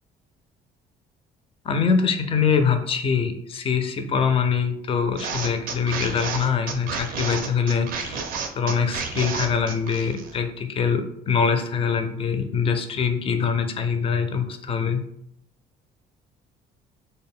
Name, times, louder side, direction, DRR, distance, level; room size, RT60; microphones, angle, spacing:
voice 1, 1.6-8.2 8.6-15.0, left 6 dB, 35° left, 7 dB, 0.3 m, -23 dB
sound 1, 5.2-10.4, right 5 dB, 60° right, 0.4 m, -31 dB
2.0 x 2.0 x 3.5 m, 0.74 s
cardioid pair, 110°, 17 cm